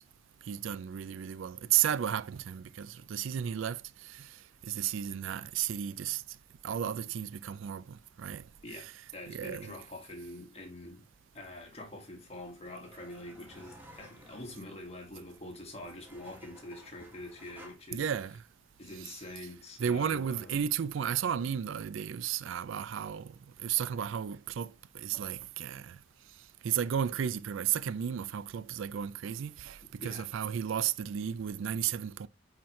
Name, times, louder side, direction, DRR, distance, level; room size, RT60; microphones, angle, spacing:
voice 1, 0.5-4.4 4.6-6.2 6.6-8.4 8.7-8.9 9.3-9.7 17.9-18.3 19.0-19.1 19.8-23.3 23.6-26.0 26.6-32.3, right 9 dB, 70° right, 0.4 m, -33 dB
voice 2, 8.6-11.1 11.3-18.1 18.8-20.7 30.0-30.3, left 1 dB, 30° left, 1.6 m, -45 dB
sound 1, 12.1-17.7, right 1 dB, 10° right, 1.5 m, -56 dB
8.6 x 4.0 x 3.1 m
head